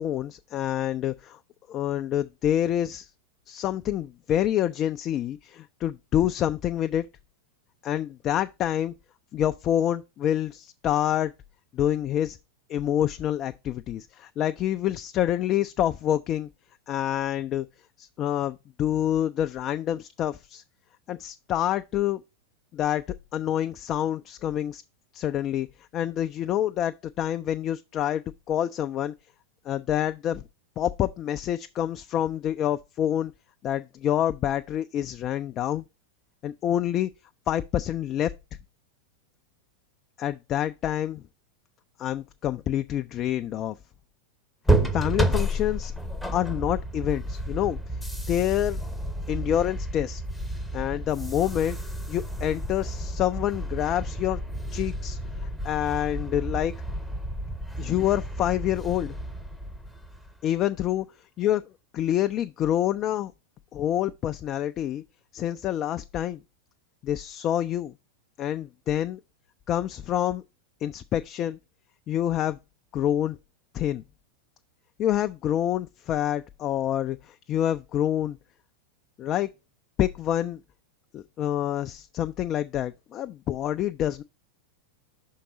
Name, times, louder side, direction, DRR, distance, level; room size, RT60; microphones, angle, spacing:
voice 1, 0.0-1.4 1.7-3.1 3.5-7.1 7.8-8.9 9.3-11.3 11.7-12.4 12.7-16.5 16.9-17.7 18.0-20.6 21.1-22.2 22.7-23.0 23.3-24.8 25.1-25.7 25.9-28.2 28.5-29.1 29.7-30.4 30.8-33.3 33.6-35.8 36.4-37.1 37.5-38.3 40.2-41.2 42.0-43.8 44.9-45.9 46.3-47.8 48.3-48.8 49.3-50.2 50.7-51.8 52.1-54.4 54.7-55.2 55.6-56.7 57.8-59.2 60.4-61.0 61.4-61.6 61.9-63.3 63.7-65.0 65.3-66.4 67.0-67.9 68.4-69.2 69.7-70.4 70.8-71.6 72.1-72.6 72.9-73.4 73.7-74.0 75.0-78.4 79.2-79.5 80.0-80.6 81.1-84.2, left 11 dB, 30° left, 0.3 m, -27 dB
sound 1, 44.6-60.4, right 1 dB, ahead, 0.7 m, -31 dB
5.9 x 4.7 x 4.6 m
figure-of-eight pair, 90°, 0 cm